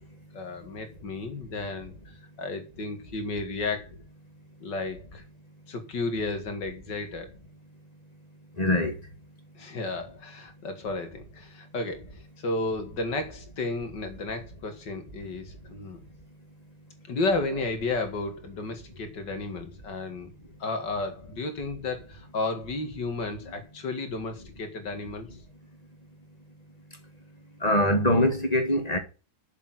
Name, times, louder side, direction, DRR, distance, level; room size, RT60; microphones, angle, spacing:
voice 1, 0.3-3.9 4.6-5.2 5.7-7.3 9.6-16.0 17.1-20.3 20.6-25.3, left 3 dB, 70° left, 2.6 m, -33 dB
voice 2, 8.6-8.9 27.6-29.0, left 1 dB, 20° left, 1.7 m, -23 dB
7.2 x 6.7 x 7.5 m
omnidirectional pair, 2.0 m